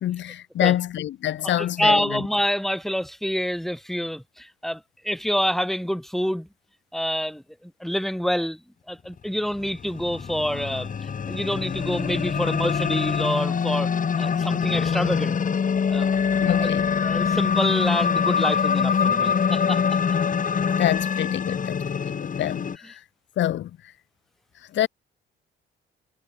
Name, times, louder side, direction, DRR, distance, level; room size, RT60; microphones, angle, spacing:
voice 1, 0.0-2.2 16.4-16.9 20.7-23.0 23.4-23.7 24.7-24.9, left 12 dB, 65° left, 1.0 m, -26 dB
voice 2, 1.4-6.5 6.9-8.6 8.9-13.9 14.2-15.4 15.9-16.2 16.6-16.7 17.0-19.8, equal, ahead, 7.2 m, -27 dB
sound 1, 9.6-22.8, left 6 dB, 40° left, 2.1 m, -24 dB
cardioid pair, 90°, 20 cm